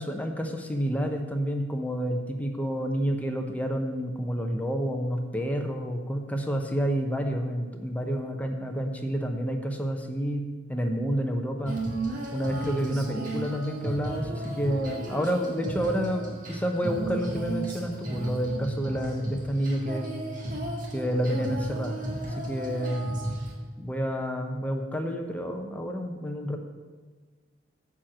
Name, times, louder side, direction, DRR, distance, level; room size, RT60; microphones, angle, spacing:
voice 1, 0.0-11.8 12.3-20.2 20.9-23.2 23.8-26.6, equal, 10° left, 3 dB, 0.8 m, -29 dB
Female singing, 11.7-23.5, right 1 dB, 45° right, 1.6 m, -34 dB
9.7 x 4.5 x 7.4 m, 1.4 s
head